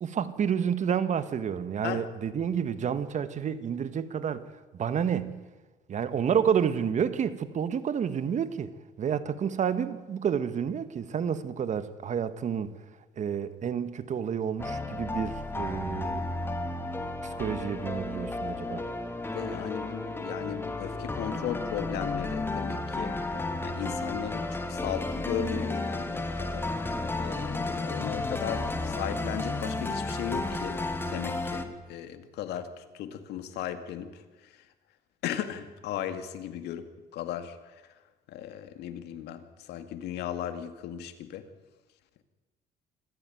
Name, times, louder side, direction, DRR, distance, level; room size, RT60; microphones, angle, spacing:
voice 1, 0.0-4.5 4.7-5.4 5.9-8.7 9.0-12.7 13.2-16.2 17.2-18.8, right 7 dB, 45° right, 1.6 m, -29 dB
sound 1, 14.6-31.7, left 2 dB, 15° left, 2.3 m, -33 dB
voice 2, 19.3-26.7 27.2-30.8 31.1-34.2 35.2-37.7 38.3-41.5, left 10 dB, 80° left, 2.2 m, -36 dB
25.5 x 14.5 x 9.3 m
cardioid pair, 110°, 17 cm